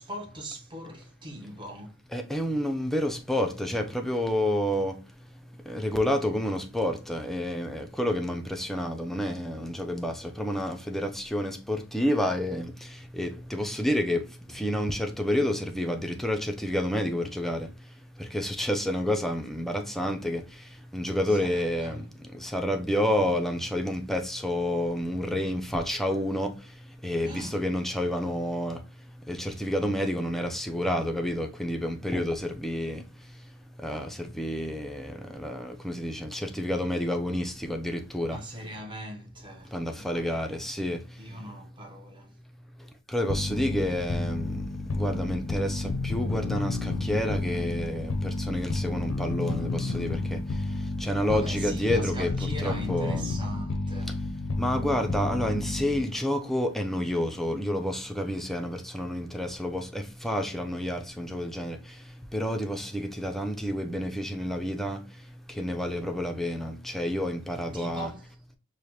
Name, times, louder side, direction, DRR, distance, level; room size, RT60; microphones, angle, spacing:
voice 1, 0.0-2.0 21.3-22.1 27.2-27.6 38.3-40.6 41.2-42.4 51.3-54.2 67.7-68.4, right 1 dB, 20° right, 0.9 m, -41 dB
voice 2, 2.1-38.4 39.6-41.4 42.6-53.3 54.1-54.2 54.6-68.1, left 1 dB, ahead, 0.4 m, -30 dB
sound 1, 43.3-56.2, left 2 dB, 60° left, 0.5 m, -31 dB
4.9 x 2.1 x 2.8 m
head